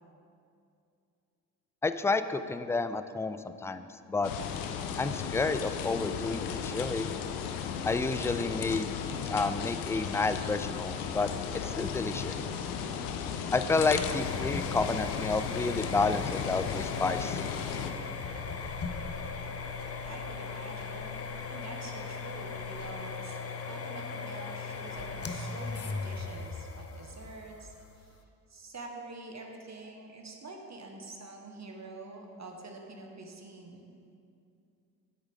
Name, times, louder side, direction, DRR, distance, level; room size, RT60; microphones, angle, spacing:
voice 1, 1.8-4.3 5.0-7.1 7.9-9.0 9.3-11.3 11.6-12.3 13.5-17.4, left 3 dB, 5° left, 11 dB, 0.3 m, -30 dB
sound 1, 4.2-17.9, left 7 dB, 85° left, 0.6 m, -35 dB
sound 2, 13.7-28.2, left 4 dB, 35° left, 0.9 m, -38 dB
voice 2, 20.0-21.2 21.5-28.1 28.5-33.9, right 2 dB, 40° right, 2 dB, 1.5 m, -46 dB
10.0 x 8.0 x 3.6 m, 2.5 s
hypercardioid pair, 40°, 43 cm